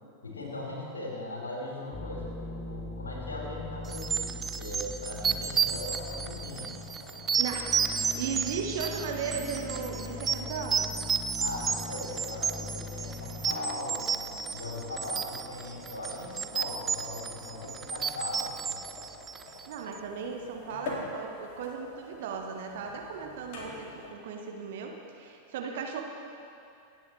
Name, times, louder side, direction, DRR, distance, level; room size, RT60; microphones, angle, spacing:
voice 1, 0.2-6.7 11.4-18.8, left 2 dB, 75° left, -3 dB, 3.7 m, -39 dB
sound 1, 1.9-19.3, left 3 dB, 15° left, 0.8 m, -43 dB
sound 2, 3.9-19.7, right 7 dB, 20° right, 0.4 m, -32 dB
sound 3, 5.0-24.1, left 2 dB, 50° left, 2.4 m, -47 dB
voice 2, 7.4-11.0 19.7-26.0, right 6 dB, 55° right, 2 dB, 1.3 m, -36 dB
25.5 x 9.4 x 3.3 m, 2.6 s
figure-of-eight pair, 90°, 0 cm